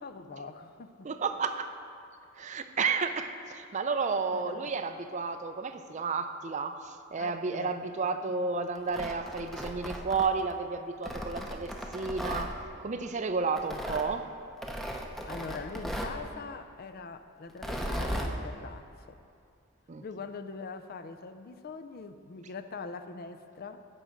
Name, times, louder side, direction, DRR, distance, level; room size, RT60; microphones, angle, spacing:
voice 1, 0.0-1.1 4.3-4.7 7.2-7.8 8.2-8.4 15.3-19.2 20.0-23.9, left 4 dB, 45° left, 10 dB, 0.4 m, -43 dB
voice 2, 1.0-1.7 2.4-14.3 19.9-20.0, right 4 dB, 35° right, 9 dB, 0.4 m, -32 dB
Tearing, 8.8-10.5 11.0-12.5 13.6-14.1 14.6-16.2 17.5-18.3, equal, ahead, 0.7 m, -36 dB
11.0 x 5.0 x 7.9 m, 2.5 s
head